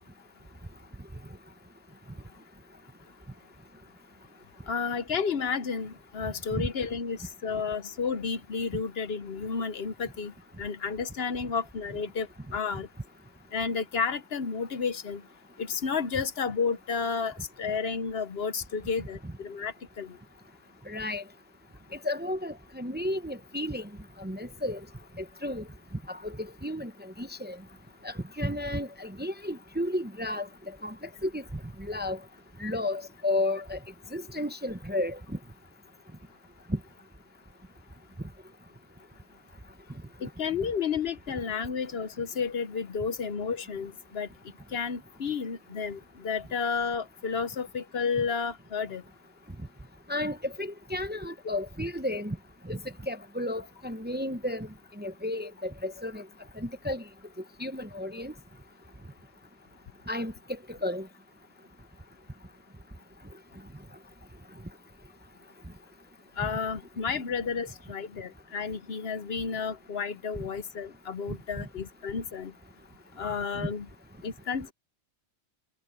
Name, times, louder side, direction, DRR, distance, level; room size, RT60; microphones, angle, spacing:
voice 1, 4.7-10.3 10.6-12.3 12.5-12.9 13.5-15.2 15.6-20.2 40.2-44.3 44.7-49.0 66.4-72.5 73.2-73.9 74.2-74.7, left 5 dB, 65° left, 1.1 m, -31 dB
voice 2, 20.9-21.2 22.0-23.9 24.2-24.8 25.2-25.6 26.1-27.6 28.0-30.5 30.8-31.0 31.2-31.4 31.8-32.2 32.6-33.8 34.1-35.4 36.7-36.8 50.1-52.4 52.6-54.7 55.0-56.2 56.6-57.0 57.6-58.3 60.1-61.1 73.5-73.7, left 1 dB, 10° right, 0.7 m, -33 dB
omnidirectional pair, 1.2 m